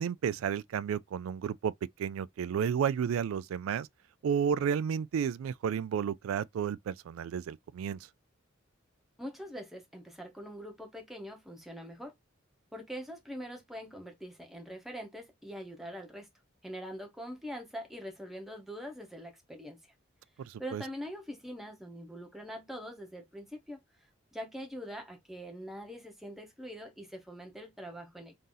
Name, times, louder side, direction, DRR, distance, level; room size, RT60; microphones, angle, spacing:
voice 1, 0.0-1.7 2.0-3.9 4.2-8.0 20.4-20.8, right 7 dB, 90° right, 0.3 m, -32 dB
voice 2, 9.2-12.1 12.7-16.3 16.6-19.8 20.6-23.8 24.3-28.3, equal, ahead, 1.0 m, -43 dB
3.8 x 2.7 x 3.8 m
head